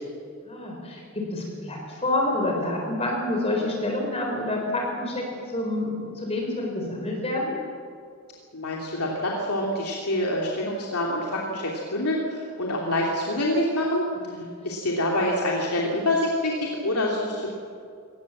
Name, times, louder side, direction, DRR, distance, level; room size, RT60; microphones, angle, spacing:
voice 1, 0.4-5.2 5.5-7.6 14.3-14.4, left 1 dB, 25° left, 0 dB, 4.1 m, -28 dB
voice 2, 8.5-14.1 14.3-17.5, left 1 dB, 85° left, -2 dB, 2.9 m, -26 dB
24.0 x 19.0 x 7.5 m, 2.3 s
head